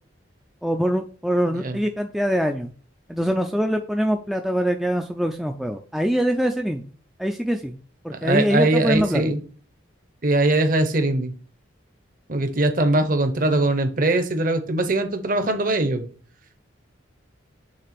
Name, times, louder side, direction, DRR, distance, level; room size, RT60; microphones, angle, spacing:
voice 1, 0.6-2.7 3.1-6.8 7.2-7.8 8.0-9.2, equal, ahead, 0.3 m, -23 dB
voice 2, 8.2-9.4 10.2-11.3 12.3-16.1, right 2 dB, 45° right, 0.8 m, -21 dB
6.5 x 3.3 x 5.9 m
head